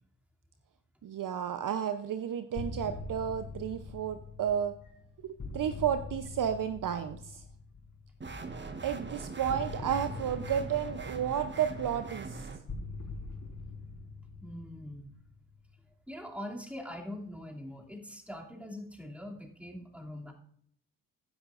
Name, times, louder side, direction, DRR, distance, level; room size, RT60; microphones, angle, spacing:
voice 1, 1.0-4.8 5.2-7.4 8.8-12.5, right 9 dB, 50° right, 10 dB, 0.8 m, -32 dB
sound 1, 2.5-8.3 9.5-15.7, left 3 dB, 45° left, 4.0 m, -43 dB
sound 2, 8.2-12.6, right 3 dB, 25° right, 1.4 m, -41 dB
voice 2, 14.4-15.1 16.1-20.3, left 1 dB, 5° right, -1 dB, 2.7 m, -43 dB
15.0 x 10.5 x 2.5 m, 0.65 s
hypercardioid pair, 40°, 41 cm